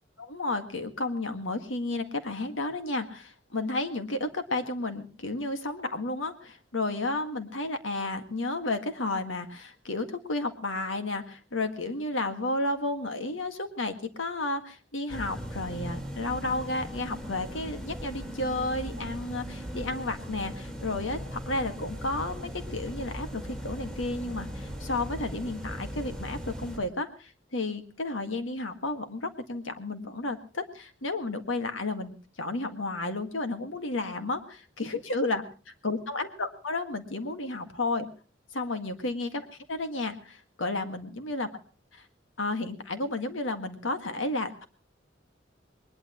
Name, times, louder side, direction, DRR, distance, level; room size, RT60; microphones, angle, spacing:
voice 1, 0.2-35.4 35.8-38.1 38.5-41.5 41.9-42.0 42.4-44.7, left 2 dB, 85° left, 7 dB, 1.8 m, -32 dB
sound 1, 15.1-26.8, equal, 5° left, 2.8 m, -38 dB
20.5 x 20.5 x 3.0 m, 0.35 s
head